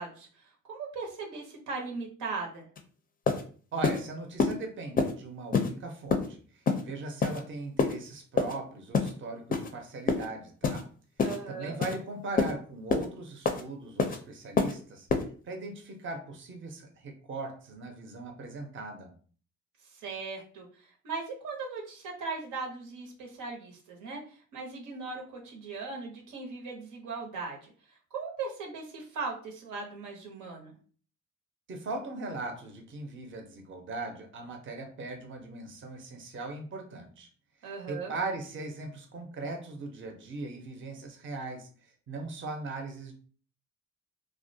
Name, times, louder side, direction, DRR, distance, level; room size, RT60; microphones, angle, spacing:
voice 1, 0.0-2.7 11.2-11.8 19.9-27.7 28.1-30.8 37.6-38.1, right 4 dB, 90° right, 0 dB, 0.8 m, -38 dB
sound 1, 2.8-2.9 3.3-3.4 3.8-4.0 4.4-4.5 5.0-5.1 5.5-5.7 6.1-6.3 6.7-6.8 7.2-7.4 7.8-7.9 8.4-8.5 8.9-9.1 9.5-9.7 10.1-10.3 10.6-10.8 11.2-11.4 11.8-12.0 12.4-12.5 12.9-13.1 13.5-13.6 14.0-14.2 14.6-14.7 15.1-15.2, left 4 dB, 30° left, 0.4 m, -26 dB
voice 2, 3.7-10.9 11.5-15.1 15.4-19.1 31.7-37.3 37.6-41.7 42.1-43.1, right 3 dB, 40° right, 3 dB, 0.6 m, -39 dB
2.3 x 2.1 x 2.6 m, 0.42 s
cardioid pair, 90°, 30 cm